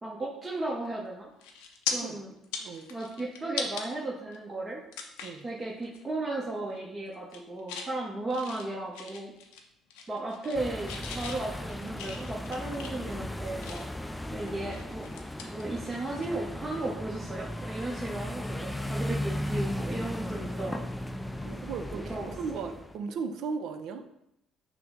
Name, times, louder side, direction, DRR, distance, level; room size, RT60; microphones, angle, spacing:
voice 1, 0.0-1.3 1.9-2.3 2.9-4.8 5.4-9.3 10.1-13.8 14.3-15.1 15.4-20.8 21.9-22.3, right 2 dB, 25° right, -3 dB, 0.7 m, -35 dB
sound 1, 0.8-1.1 1.4-1.9 2.4-3.9 4.3-4.4 4.9-5.4 5.8-6.0 6.3-6.8 7.1-7.9 8.3-9.6 9.9-10.6 10.9-14.0 14.5-16.3 16.6-16.8 18.7-18.8, left 6 dB, 90° left, 0.5 m, -39 dB
voice 2, 2.6-2.9 5.2-5.5 21.4-24.0, right 5 dB, 70° right, 7 dB, 0.4 m, -36 dB
sound 2, 10.5-23.0, left 1 dB, 10° left, 0.3 m, -36 dB
5.7 x 2.0 x 3.5 m, 0.80 s
supercardioid pair, 75°, 0 cm